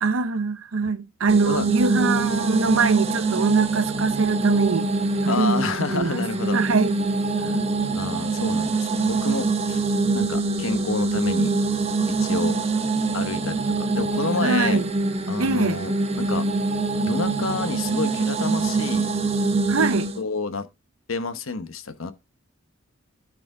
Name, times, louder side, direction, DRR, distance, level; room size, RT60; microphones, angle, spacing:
voice 1, 0.0-4.9 5.2-5.5 5.9-6.2 6.5-7.0 14.4-14.9 15.4-15.8 19.7-20.1, right 4 dB, 90° right, 0.8 m, -22 dB
sound 1, 1.3-20.2, right 3 dB, 30° right, 1.0 m, -24 dB
voice 2, 5.3-6.6 7.4-7.6 7.9-9.8 10.1-11.5 12.1-12.6 13.1-13.6 13.9-14.8 15.3-16.5 17.1-19.1 20.1-20.7 21.1-22.1, left 4 dB, 85° left, 1.0 m, -29 dB
12.5 x 4.8 x 3.8 m
head